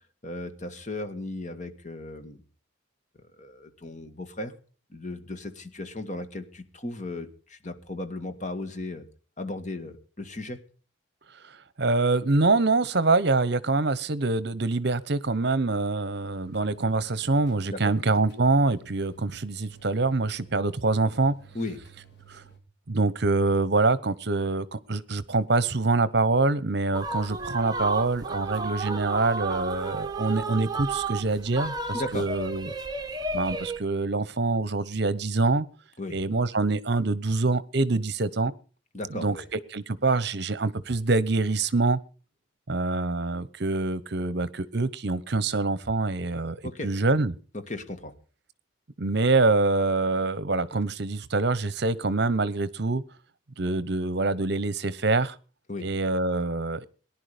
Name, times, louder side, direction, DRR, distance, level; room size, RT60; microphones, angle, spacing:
voice 1, 0.2-2.4 3.4-4.5 4.9-9.1 9.4-10.6 17.7-17.8 21.5-21.8 31.9-32.3 36.0-36.2 38.9-39.5 46.6-46.9 47.5-48.1 55.7-55.9, left 2 dB, 35° left, 1.9 m, -36 dB
voice 2, 11.8-21.3 22.3-22.4 22.9-32.7 33.3-35.7 36.1-38.5 39.1-42.0 42.7-47.3 49.0-53.0 53.6-55.4 55.8-56.9, right 3 dB, 55° right, 1.0 m, -25 dB
sound 1, 16.1-22.6, right 7 dB, 55° left, 3.6 m, -53 dB
sound 2, 26.9-33.8, right 3 dB, 20° right, 1.2 m, -32 dB
18.5 x 11.0 x 5.1 m
head